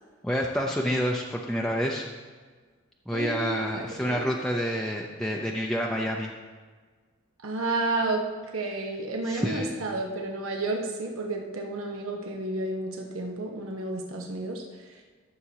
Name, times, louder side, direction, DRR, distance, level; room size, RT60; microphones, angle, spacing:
voice 1, 0.2-2.1 3.1-6.3 9.2-9.7, equal, 5° left, -2 dB, 0.5 m, -28 dB
voice 2, 3.1-4.2 7.4-8.2 8.5-14.6, right 2 dB, 85° right, 1 dB, 1.1 m, -31 dB
14.5 x 6.8 x 2.9 m, 1.5 s
head